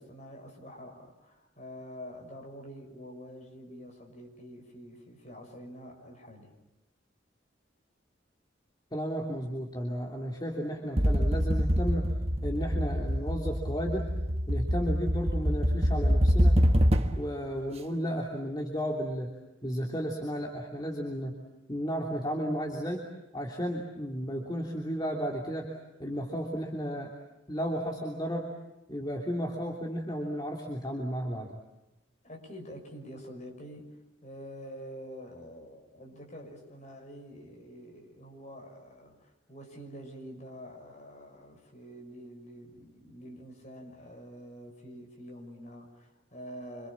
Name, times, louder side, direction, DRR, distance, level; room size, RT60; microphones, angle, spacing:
voice 1, 0.0-6.5 32.2-46.9, equal, 40° left, 2 dB, 6.3 m, -46 dB
voice 2, 8.9-12.1 12.4-14.1 14.5-16.6 17.1-19.3 19.6-21.4 21.7-25.7 26.0-27.1 27.5-28.5 28.9-31.6, equal, 20° left, 0 dB, 3.1 m, -33 dB
sound 1, 11.0-17.3, equal, 30° right, 1.4 m, -25 dB
27.5 x 26.5 x 7.3 m, 0.96 s
head